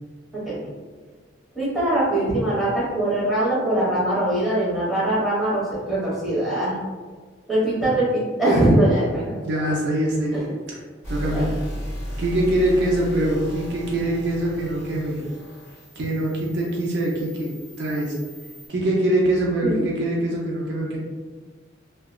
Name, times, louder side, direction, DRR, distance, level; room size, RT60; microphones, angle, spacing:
voice 1, 1.5-5.6 5.9-6.8 7.5-9.3 10.3-10.5 11.3-11.4 19.6-19.9, right 1 dB, ahead, -9 dB, 1.0 m, -22 dB
voice 2, 9.4-10.4 10.7-10.8 11.1-11.5 12.2-15.2 16.0-17.5 17.8-18.1 18.7-21.0, right 1 dB, 65° right, -3 dB, 0.5 m, -23 dB
sound 1, 11.0-18.7, equal, 15° left, 1.1 m, -35 dB
2.8 x 2.2 x 2.2 m, 1.4 s
head